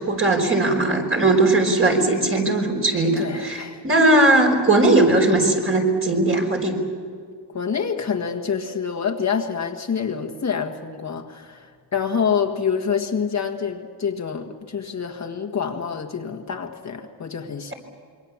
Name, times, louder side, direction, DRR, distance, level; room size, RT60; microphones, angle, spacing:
voice 1, 0.0-3.6 3.8-6.8, right 2 dB, 30° right, 2 dB, 4.8 m, -18 dB
voice 2, 3.2-3.8 7.5-17.7, left 6 dB, 40° left, 3 dB, 1.7 m, -27 dB
27.0 x 23.5 x 7.3 m, 2.1 s
wide cardioid pair, 140°, 43 cm